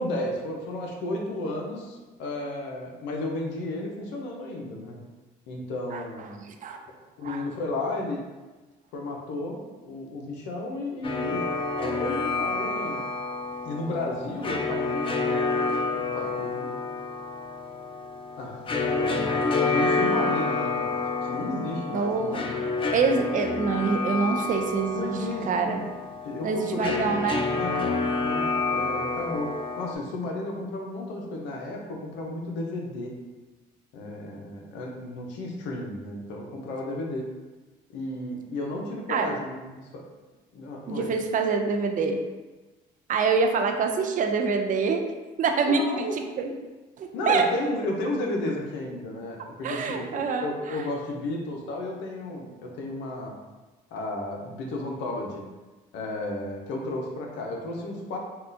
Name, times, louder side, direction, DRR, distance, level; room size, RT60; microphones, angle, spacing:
voice 1, 0.0-5.0 5.5-6.3 7.2-8.2 8.9-11.4 11.8-13.0 13.6-16.8 18.4-20.9 21.2-22.6 24.9-25.9 26.2-27.1 27.5-27.9 28.2-29.5 29.8-33.1 33.9-37.2 37.9-40.0 40.5-41.1 45.7-46.1 47.1-53.3 53.9-55.4 55.9-58.2, left 2 dB, 80° left, 0 dB, 0.6 m, -33 dB
voice 2, 6.3-6.8 7.2-7.4 21.9-22.4 22.9-25.2 25.5-25.8 26.4-27.4 39.1-39.4 40.9-42.2 43.1-45.1 45.4-46.5 47.0-47.5 49.6-50.8, right 5 dB, 45° right, 4 dB, 0.4 m, -26 dB
sound 1, 11.0-29.9, left 3 dB, 30° left, 0.4 m, -29 dB
3.7 x 2.3 x 2.6 m, 1.2 s
supercardioid pair, 75°, 18 cm